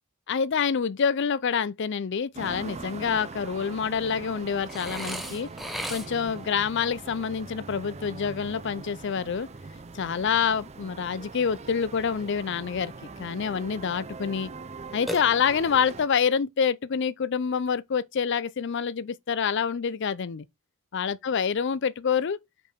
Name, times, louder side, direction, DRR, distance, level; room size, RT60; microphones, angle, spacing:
voice 1, 0.3-5.5 5.9-9.5 9.9-12.9 13.2-14.5 14.9-20.5 20.9-22.4, left 6 dB, 50° left, 0.4 m, -27 dB
sound 1, 2.3-16.1, right 3 dB, 30° right, 0.5 m, -42 dB
Burping eructation, 4.7-6.4 15.1-15.8, equal, ahead, 0.8 m, -36 dB
5.2 x 4.7 x 5.0 m
head